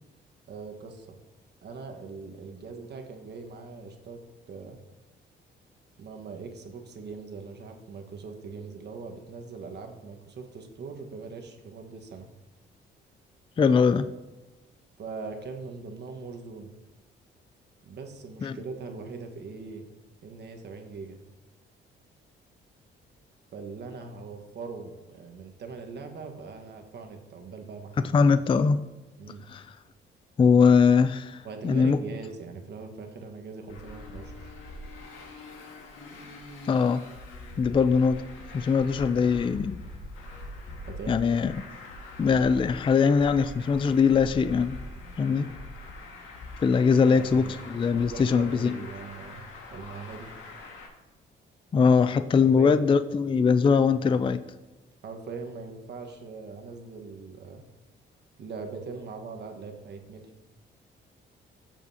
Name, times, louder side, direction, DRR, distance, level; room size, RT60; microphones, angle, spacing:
voice 1, 0.5-1.2 1.6-4.8 6.0-12.3 15.0-16.7 17.8-19.8 20.2-21.2 23.5-28.2 29.2-29.4 31.4-34.5 40.9-41.2 45.3-45.5 47.0-47.6 47.9-49.4 49.7-50.3 52.4-52.8 55.0-57.6 58.4-60.3, right 4 dB, 60° right, 4 dB, 1.4 m, -41 dB
voice 2, 13.6-14.1 18.4-18.6 28.1-28.8 29.5-29.7 30.4-32.0 36.7-37.0 37.6-38.2 38.5-39.8 41.1-41.5 42.2-44.8 45.2-45.5 46.6-48.7 51.7-54.4, left 5 dB, 25° left, 13 dB, 0.4 m, -21 dB
Traffic noise roadway noise, 33.7-50.9, left 2 dB, 85° left, 1.8 m, -43 dB
13.0 x 7.0 x 2.8 m, 1.1 s
cardioid pair, 90°, 20 cm